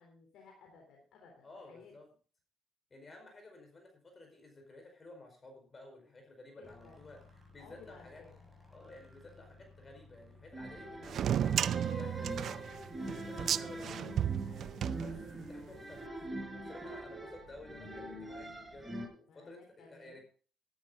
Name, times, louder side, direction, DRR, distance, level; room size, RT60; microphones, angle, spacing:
voice 1, 0.0-1.9 6.6-7.0 7.6-8.5 10.9-11.5 14.4-15.2 19.3-20.2, left 4 dB, 80° left, 1 dB, 3.7 m, -58 dB
voice 2, 1.4-2.1 2.9-7.2 7.5-8.2 8.7-12.7 13.1-14.3 14.9-15.1 15.5-16.3 16.5-20.2, left 2 dB, 35° left, 4 dB, 4.9 m, -54 dB
sound 1, 6.6-13.9, left 3 dB, 5° left, 7.3 m, -58 dB
sound 2, 10.5-19.1, right 1 dB, 10° right, 5.6 m, -43 dB
sound 3, 11.1-15.6, right 10 dB, 65° right, 0.5 m, -34 dB
14.0 x 12.0 x 3.9 m, 0.40 s
cardioid pair, 90°, 0 cm